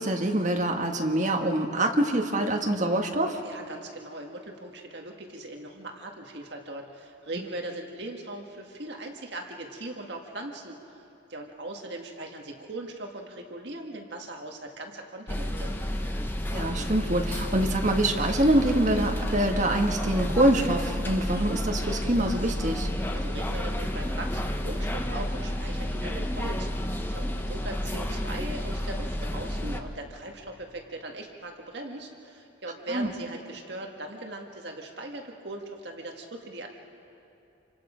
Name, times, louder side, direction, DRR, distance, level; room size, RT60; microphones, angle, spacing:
voice 1, 0.0-3.4 16.5-22.9 32.9-33.1, right 1 dB, 35° right, 2 dB, 1.6 m, -25 dB
voice 2, 3.4-11.0 11.3-15.7 23.1-36.8, right 1 dB, 55° right, 2 dB, 1.8 m, -39 dB
sound 1, 15.3-29.8, equal, 10° left, 0.9 m, -31 dB
27.5 x 25.5 x 5.1 m, 2.9 s
head